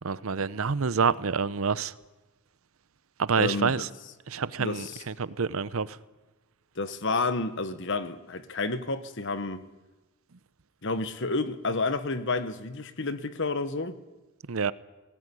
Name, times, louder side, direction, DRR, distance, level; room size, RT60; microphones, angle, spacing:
voice 1, 0.0-1.9 3.2-3.9 4.3-6.0 14.5-14.7, right 5 dB, 70° right, 0.7 m, -27 dB
voice 2, 3.4-3.9 4.6-5.0 6.8-9.7 10.8-14.0, left 3 dB, 55° left, 1.3 m, -30 dB
19.0 x 17.5 x 9.9 m
head